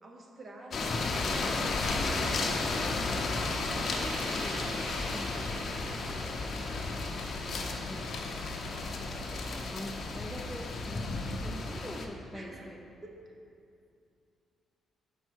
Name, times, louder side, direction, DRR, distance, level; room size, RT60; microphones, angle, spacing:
voice 1, 0.0-1.8 2.2-3.0 3.4-3.7 6.9-7.9 12.3-12.7 13.0-13.4, right 1 dB, 40° right, 1 dB, 0.9 m, -50 dB
sound 1, 0.7-12.1, left 3 dB, 50° left, 0.7 m, -34 dB
sound 2, 0.9-11.1, left 3 dB, 90° left, 1.0 m, -42 dB
sound 3, 3.6-9.1, right 1 dB, 75° right, 1.3 m, -46 dB
voice 2, 4.1-5.3 7.8-8.1 9.2-12.8, left 1 dB, 5° left, 2 dB, 0.5 m, -45 dB
5.5 x 4.5 x 6.2 m, 2.5 s
cardioid pair, 90°, 0 cm